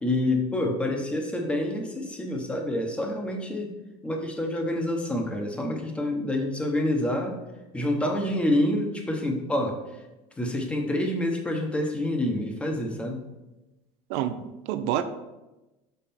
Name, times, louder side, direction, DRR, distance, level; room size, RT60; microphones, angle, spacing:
voice 1, 0.0-3.7 4.0-7.4 7.7-9.8 10.4-13.2, left 1 dB, 5° left, 2 dB, 0.9 m, -27 dB
voice 2, 14.1-15.0, right 11 dB, 65° right, 10 dB, 0.7 m, -28 dB
6.3 x 5.6 x 4.3 m, 1.0 s
cardioid pair, 155°, 15 cm